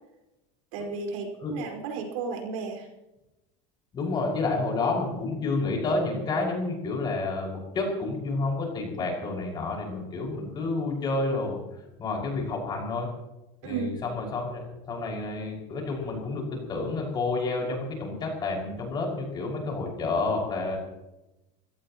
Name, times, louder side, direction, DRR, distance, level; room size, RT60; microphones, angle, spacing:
voice 1, 0.7-2.9 13.6-13.9, right 5 dB, 75° right, 2 dB, 5.1 m, -33 dB
voice 2, 3.9-11.6 12.0-13.1 13.6-20.8, left 3 dB, 25° left, 0 dB, 5.8 m, -29 dB
26.5 x 17.0 x 3.1 m, 0.97 s
cardioid pair, 170°, 17 cm